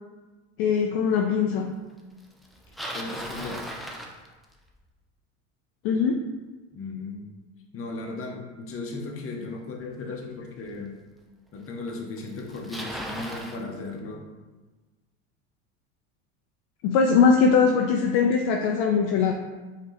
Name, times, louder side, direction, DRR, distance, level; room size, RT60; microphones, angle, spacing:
voice 1, 0.6-1.7 5.8-6.3 16.8-19.3, left 5 dB, 55° left, 3 dB, 0.5 m, -21 dB
Bicycle, 2.4-4.8 9.8-9.9 10.7-10.8 11.9-12.0 12.2-13.6, equal, ahead, 0.5 m, -37 dB
voice 2, 2.9-3.7 6.7-7.3 7.7-10.9 11.5-14.2, left 3 dB, 35° left, 1 dB, 1.0 m, -36 dB
5.2 x 3.0 x 3.3 m, 1.3 s
hypercardioid pair, 85°, 39 cm